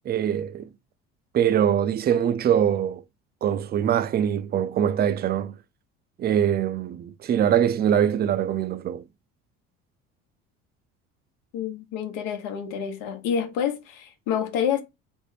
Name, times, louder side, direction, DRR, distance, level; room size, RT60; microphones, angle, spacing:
voice 1, 0.1-0.7 1.3-3.0 3.4-5.6 6.2-9.0, right 9 dB, 35° right, 0.4 m, -23 dB
voice 2, 11.5-14.8, left 8 dB, 80° left, 1.0 m, -28 dB
3.4 x 2.1 x 4.0 m
supercardioid pair, 80°, 29 cm